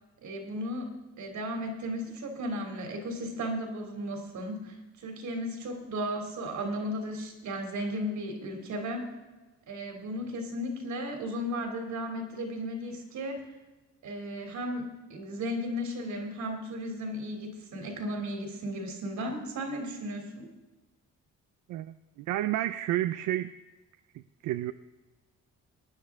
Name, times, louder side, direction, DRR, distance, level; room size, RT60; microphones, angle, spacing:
voice 1, 0.2-0.9 1.2-4.7 5.0-9.1 9.7-13.4 14.0-20.5, equal, 70° right, 3 dB, 2.9 m, -35 dB
voice 2, 21.7-23.5 24.1-24.7, right 14 dB, 85° right, 11 dB, 0.5 m, -31 dB
19.0 x 9.9 x 3.6 m, 1.2 s
cardioid pair, 90°, 30 cm